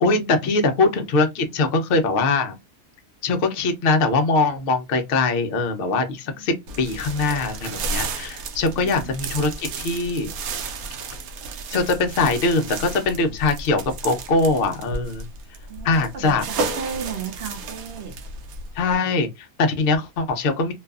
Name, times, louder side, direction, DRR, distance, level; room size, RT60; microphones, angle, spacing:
voice 1, 0.0-2.6 3.2-10.3 11.7-15.2 15.8-16.5 18.8-20.7, left 3 dB, 65° left, 0.5 m, -22 dB
sound 1, 6.7-19.0, right 3 dB, 85° right, 1.0 m, -33 dB
voice 2, 8.7-9.1 15.7-18.2, right 7 dB, 65° right, 0.6 m, -35 dB
2.6 x 2.3 x 2.3 m
omnidirectional pair, 1.5 m